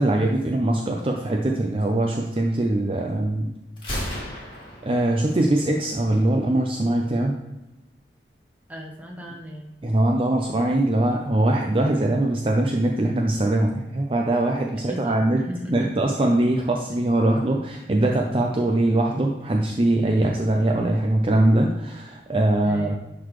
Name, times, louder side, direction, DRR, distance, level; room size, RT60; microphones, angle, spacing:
voice 1, 0.0-3.5 4.1-4.5 4.8-7.4 9.8-15.4 15.7-23.0, right 1 dB, 30° right, 1 dB, 0.5 m, -22 dB
Gunshot gunfire, 3.8-5.7, equal, 30° left, 2.1 m, -34 dB
voice 2, 8.7-9.8 14.8-16.2 22.6-23.0, equal, 10° right, 0 dB, 1.1 m, -37 dB
11.0 x 4.0 x 3.1 m, 1.0 s
head